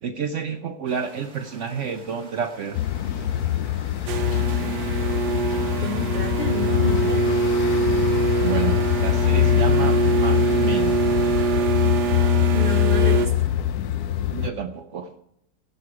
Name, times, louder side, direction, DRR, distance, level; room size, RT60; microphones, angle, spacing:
voice 1, 0.0-2.8 8.4-11.1 14.3-15.1, right 6 dB, 65° right, 8 dB, 0.8 m, -30 dB
sound 1, 0.9-13.1, right 3 dB, 30° right, 1.5 m, -48 dB
sound 2, 2.7-14.5, left 12 dB, 75° left, 1.1 m, -23 dB
sound 3, 4.1-13.3, right 5 dB, 80° right, 1.3 m, -24 dB
voice 2, 5.6-7.4 12.5-13.5, left 2 dB, 40° left, 4 dB, 0.6 m, -30 dB
17.0 x 6.8 x 4.7 m, 0.76 s
omnidirectional pair, 1.8 m